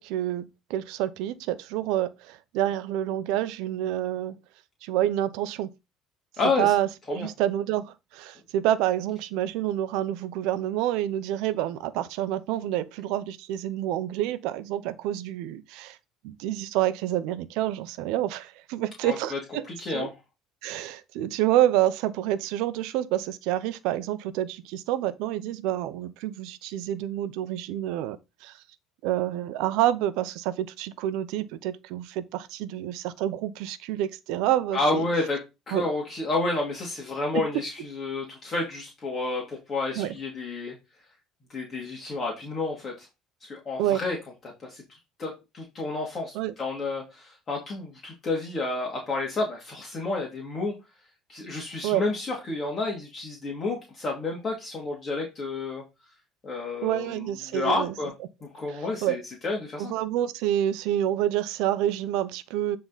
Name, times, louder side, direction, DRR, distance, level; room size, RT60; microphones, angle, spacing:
voice 1, 0.0-4.3 4.8-5.7 6.6-7.9 8.1-16.0 16.2-20.1 20.6-28.6 29.0-35.1 35.7-35.9 40.0-40.1 43.8-44.0 46.3-46.5 51.8-52.0 56.8-57.9 58.7-59.2 59.8-62.8, right 12 dB, 80° right, 0.7 m, -28 dB
voice 2, 6.4-6.7 7.1-7.3 19.0-19.4 19.6-20.1 34.7-35.4 35.7-40.8 41.5-43.1 43.4-44.2 44.6-50.7 51.3-55.8 56.4-58.1 58.4-59.9, left 3 dB, 30° left, 2.4 m, -30 dB
9.1 x 3.8 x 4.1 m
cardioid pair, 115°, 0 cm